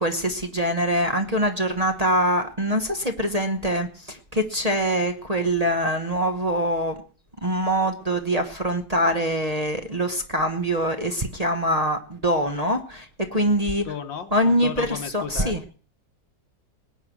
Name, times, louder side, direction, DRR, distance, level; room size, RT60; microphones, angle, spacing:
voice 1, 0.0-7.0 7.4-13.8 14.3-15.6, equal, 25° right, 4 dB, 0.9 m, -24 dB
voice 2, 13.8-15.6, left 7 dB, 90° left, 6 dB, 2.2 m, -34 dB
19.5 x 8.8 x 6.2 m, 0.40 s
omnidirectional pair, 2.0 m